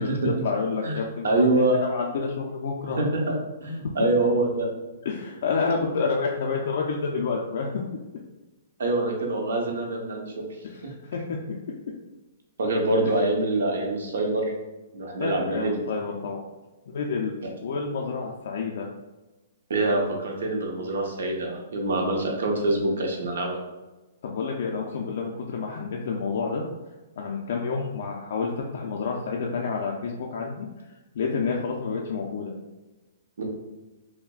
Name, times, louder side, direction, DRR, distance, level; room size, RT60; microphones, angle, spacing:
voice 1, 0.0-1.4 1.8-3.0 5.1-7.7 10.7-11.4 15.2-16.4 16.9-17.3 17.6-18.9 24.2-26.6 27.2-30.7 31.1-32.5, left 5 dB, 50° left, -1 dB, 0.4 m, -29 dB
voice 2, 1.2-1.8 2.8-4.7 5.5-5.6 8.8-10.3 10.8-10.9 12.6-14.5 14.9-15.8 17.4-17.5 19.7-23.6 33.4-33.5, right 2 dB, 75° right, 1 dB, 0.9 m, -25 dB
5.7 x 2.1 x 2.3 m, 1.1 s
hypercardioid pair, 170°, 0 cm